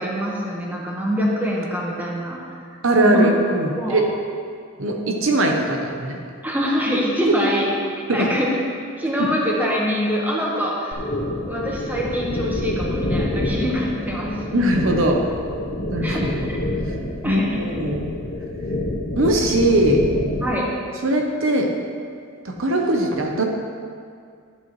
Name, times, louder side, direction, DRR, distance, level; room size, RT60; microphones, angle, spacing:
voice 1, 0.0-2.6 3.0-3.3 3.8-4.0 6.4-7.7 8.1-8.5 9.0-11.0 11.5-14.3 16.0-16.6 17.2-17.6 20.4-20.7, equal, 10° right, -4 dB, 1.3 m, -24 dB
voice 2, 2.8-4.1 4.8-6.2 8.1-8.4 9.2-9.3 14.5-15.3 15.9-16.3 17.2-18.1 19.2-20.0 21.0-21.7 22.4-23.4, right 1 dB, 65° right, 2 dB, 0.9 m, -20 dB
sound 1, 10.9-20.6, left 1 dB, 45° left, 0.9 m, -27 dB
12.0 x 8.5 x 3.2 m, 2.2 s
head